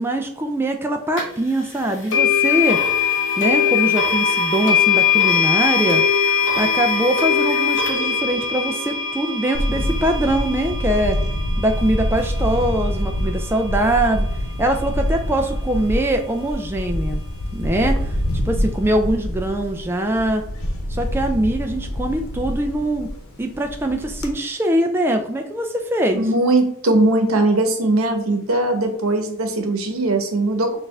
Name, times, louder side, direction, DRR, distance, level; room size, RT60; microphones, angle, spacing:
voice 1, 0.0-2.8 3.4-6.0 6.6-11.2 11.6-14.3 14.6-17.2 17.5-18.2 18.5-20.4 20.9-23.1 23.4-26.3, right 1 dB, 10° right, 4 dB, 0.3 m, -22 dB
sound 1, 1.2-1.3 2.1-13.1, left 7 dB, 60° left, 1.2 m, -21 dB
Camera, 9.5-24.3, equal, 85° left, 0.9 m, -26 dB
voice 2, 26.1-30.8, right 2 dB, 75° right, 5 dB, 0.9 m, -19 dB
6.4 x 2.5 x 3.3 m, 0.73 s
head